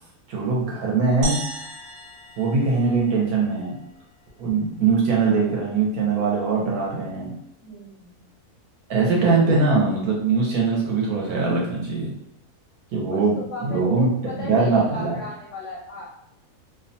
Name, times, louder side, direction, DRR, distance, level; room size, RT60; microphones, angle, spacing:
voice 1, 0.3-1.4 2.4-3.8 4.4-7.3 8.9-12.1 12.9-14.1 14.4-15.2, right 4 dB, 75° right, -3 dB, 1.1 m, -21 dB
sound 1, 1.2-3.7, right 1 dB, 55° right, 0.7 m, -34 dB
voice 2, 7.6-8.3 13.1-16.0, left 2 dB, 65° left, -4 dB, 0.8 m, -36 dB
2.6 x 2.1 x 2.6 m, 0.85 s
omnidirectional pair, 1.7 m